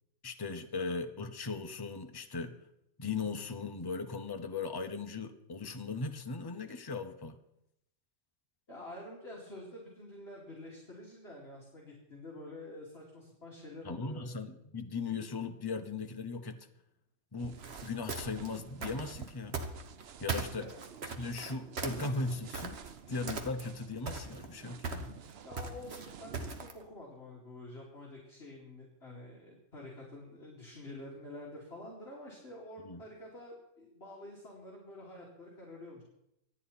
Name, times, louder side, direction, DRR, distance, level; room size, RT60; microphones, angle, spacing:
voice 1, 0.2-2.6 3.0-7.4 13.8-16.7 17.3-19.6 20.2-20.7 21.2-22.8 23.1-25.1 32.8-33.0, left 4 dB, 20° left, 6 dB, 0.8 m, -38 dB
voice 2, 8.7-14.2 20.6-20.7 25.4-36.0, left 1 dB, 35° left, -5 dB, 3.0 m, -48 dB
sound 1, 17.4-26.7, right 9 dB, 60° right, 0.6 m, -49 dB
sound 2, 17.5-20.0 20.3-23.0 23.3-23.8 24.1-26.8, right 4 dB, 40° right, 1.5 m, -39 dB
25.0 x 9.8 x 4.3 m, 0.82 s
omnidirectional pair, 1.7 m